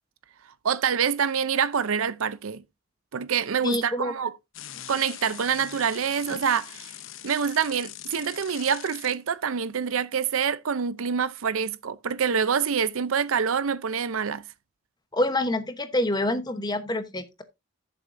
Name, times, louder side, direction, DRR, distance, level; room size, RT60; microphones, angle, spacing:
voice 1, 0.6-2.6 3.1-4.3 4.9-6.9 7.2-14.4, right 7 dB, 70° right, 0.5 m, -26 dB
voice 2, 3.6-4.1 15.1-17.4, left 1 dB, 20° left, 1.0 m, -27 dB
sound 1, 4.5-9.2, left 10 dB, 65° left, 0.8 m, -42 dB
13.0 x 7.0 x 2.6 m
head